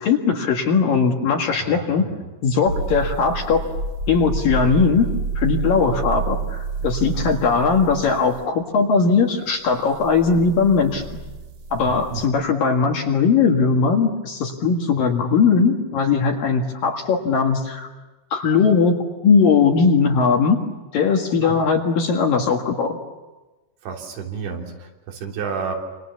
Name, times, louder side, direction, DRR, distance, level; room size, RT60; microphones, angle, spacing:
voice 1, 0.0-2.0 2.4-3.6 4.1-5.1 5.4-11.2 11.7-17.9 18.3-19.0 19.2-20.6 20.9-23.0, left 5 dB, 55° left, 2 dB, 3.0 m, -19 dB
voice 2, 1.7-2.1 6.8-7.3 11.8-12.2 21.4-21.6 23.8-25.8, right 6 dB, 75° right, 0 dB, 5.6 m, -31 dB
sound 1, 2.7-8.4 9.9-12.3, right 4 dB, 45° right, 2.2 m, -29 dB
28.0 x 27.5 x 7.2 m, 1.2 s
omnidirectional pair, 5.4 m